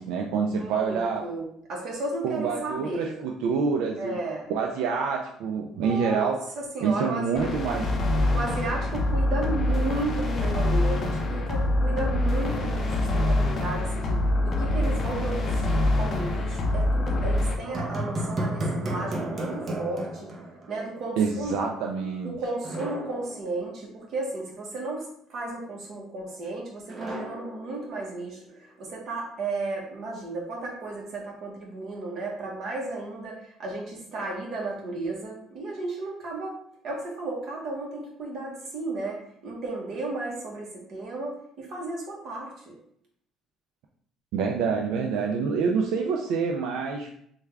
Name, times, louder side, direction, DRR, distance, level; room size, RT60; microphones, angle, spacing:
voice 1, 0.0-1.3 2.2-4.2 4.5-6.4 6.8-7.8 21.2-22.3 44.3-47.1, right 5 dB, 80° right, 1 dB, 0.3 m, -27 dB
voice 2, 0.6-3.1 4.0-4.5 5.7-7.5 8.3-20.3 20.7-21.6 22.2-36.6 36.8-42.8, right 2 dB, 50° right, -2 dB, 1.1 m, -34 dB
sound 1, 7.4-17.5, left 1 dB, 35° left, 0.5 m, -25 dB
sound 2, 17.7-21.0 21.3-21.4 22.6-24.1 26.9-28.4, right 1 dB, 35° right, 0.7 m, -33 dB
3.4 x 2.3 x 3.3 m, 0.68 s
cardioid pair, 130°, 0 cm